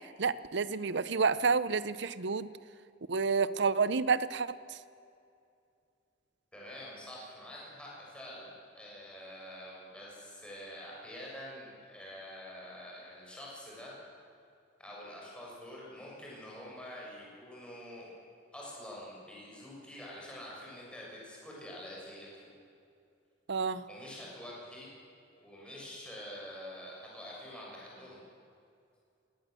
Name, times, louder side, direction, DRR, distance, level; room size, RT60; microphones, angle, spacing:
voice 1, 0.2-2.5 3.1-4.8 23.5-23.8, right 5 dB, 65° right, 16 dB, 0.7 m, -29 dB
voice 2, 6.5-13.9 14.8-18.1 18.5-22.5 23.9-24.9 25.4-28.2, left 1 dB, 5° left, -5 dB, 6.5 m, -46 dB
22.0 x 18.0 x 7.7 m, 2.5 s
head